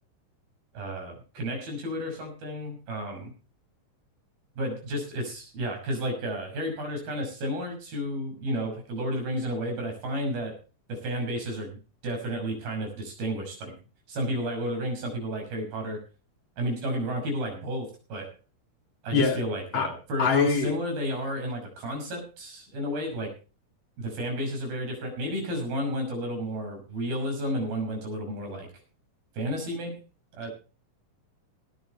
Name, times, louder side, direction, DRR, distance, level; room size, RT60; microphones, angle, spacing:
voice 1, 0.7-3.3 4.6-10.6 10.9-13.7 14.1-16.0 16.6-18.3 19.0-23.3 24.0-28.7 29.3-30.0 30.4-30.5, equal, 80° right, 7.8 m, -32 dB
voice 2, 20.2-20.7, left 5 dB, 40° left, 2.4 m, -23 dB
18.0 x 11.0 x 4.3 m
omnidirectional pair, 4.2 m